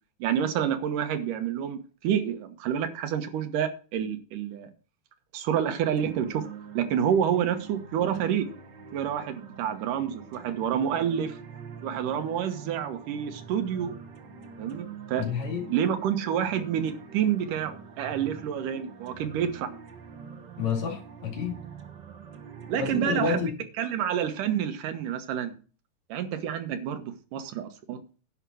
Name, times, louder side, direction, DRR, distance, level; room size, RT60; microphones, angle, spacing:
voice 1, 0.2-4.7 5.3-6.5 6.7-8.5 8.9-11.4 11.8-13.9 14.6-15.3 15.7-19.7 22.7-23.4 23.8-25.5 26.1-28.0, right 9 dB, 85° right, 9 dB, 2.7 m, -28 dB
sound 1, 6.0-23.4, right 6 dB, 55° right, 1.3 m, -45 dB
voice 2, 15.2-15.7 20.6-21.6 22.8-23.5, left 5 dB, 60° left, 1 dB, 3.6 m, -29 dB
11.0 x 5.9 x 6.2 m, 0.37 s
omnidirectional pair, 3.7 m